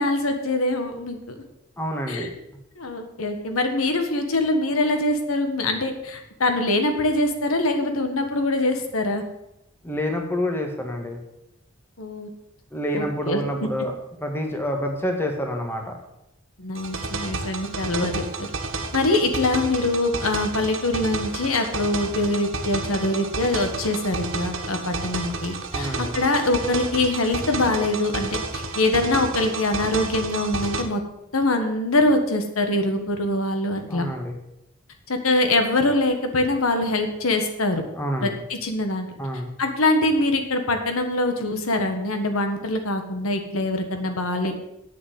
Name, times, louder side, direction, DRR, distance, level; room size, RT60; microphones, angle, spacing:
voice 1, 0.0-1.4 2.1-2.3 2.8-9.2 12.0-12.3 12.9-13.7 16.6-18.5 18.9-31.0 31.3-34.1 35.1-37.8 38.2-39.1 39.6-44.5, left 2 dB, 90° left, 6 dB, 1.5 m, -23 dB
voice 2, 1.8-2.3 9.8-11.2 12.7-13.9 14.2-16.0 25.7-26.2 33.9-34.3 37.9-38.4 39.2-39.5, equal, 10° left, 3 dB, 1.6 m, -27 dB
sound 1, 16.8-30.8, right 3 dB, 70° right, 1.5 m, -31 dB
8.5 x 7.3 x 8.0 m, 0.84 s
head